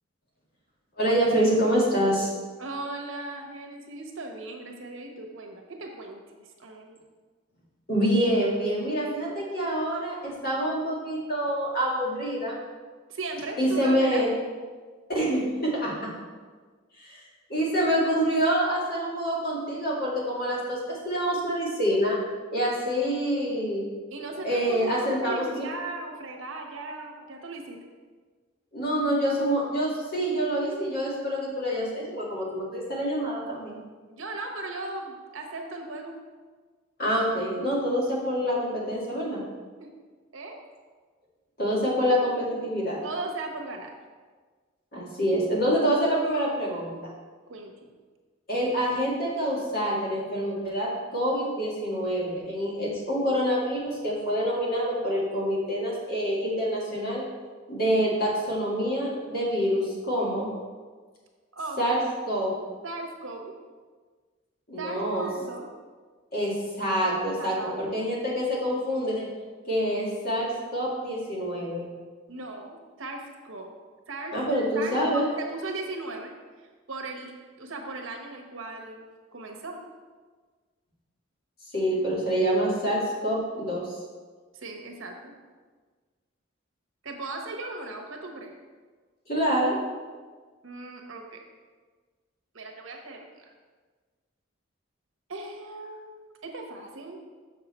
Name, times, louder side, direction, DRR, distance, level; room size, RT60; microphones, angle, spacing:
voice 1, 1.0-2.3 7.9-12.6 13.6-14.3 15.1-16.1 17.0-17.2 17.5-22.2 22.5-23.8 24.4-25.7 28.7-33.8 37.0-39.4 41.6-43.0 44.9-47.0 48.5-57.2 57.7-60.5 61.8-62.0 62.3-62.5 64.7-65.3 66.3-69.3 69.7-71.9 74.3-75.3 81.7-83.9 89.3-89.8, equal, 45° left, -5 dB, 2.2 m, -26 dB
voice 2, 2.6-7.0 13.1-14.3 24.1-27.8 34.1-36.2 39.8-39.9 40.3-40.6 43.0-43.9 47.5-47.7 61.5-61.8 62.8-63.5 64.8-65.7 67.3-67.9 72.3-73.7 74.1-74.4 74.7-76.3 76.9-77.3 77.6-79.0 79.3-79.8 84.5-85.3 87.0-88.5 90.6-91.4 92.5-93.3 95.3-97.2, right 2 dB, 80° right, 2 dB, 1.1 m, -37 dB
6.6 x 6.5 x 4.3 m, 1.4 s
head